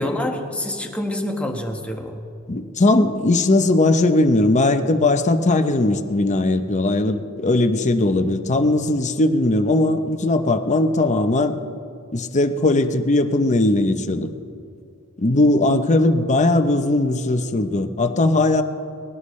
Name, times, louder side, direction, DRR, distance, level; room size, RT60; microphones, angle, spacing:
voice 1, 0.0-2.2, left 1 dB, 5° left, 2 dB, 1.4 m, -26 dB
voice 2, 2.5-11.6 12.1-14.3 15.2-18.6, left 2 dB, 35° left, 7 dB, 0.8 m, -19 dB
20.0 x 17.0 x 3.2 m, 2.4 s
head